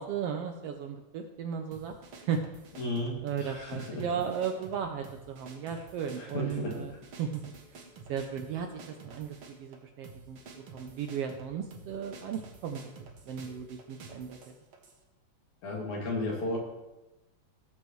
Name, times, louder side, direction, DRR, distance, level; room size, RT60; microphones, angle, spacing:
voice 1, 0.0-2.4 3.2-6.9 7.2-7.4 7.7-7.8 8.1-10.4 10.7-12.9 13.3-14.4, right 7 dB, 75° right, 5 dB, 1.4 m, -35 dB
sound 1, 1.7-15.0, right 4 dB, 55° right, 1.8 m, -50 dB
voice 2, 2.8-4.2 6.2-6.9 15.6-16.6, left 2 dB, 80° left, -3 dB, 3.8 m, -34 dB
17.0 x 7.5 x 3.1 m, 1.0 s
omnidirectional pair, 3.3 m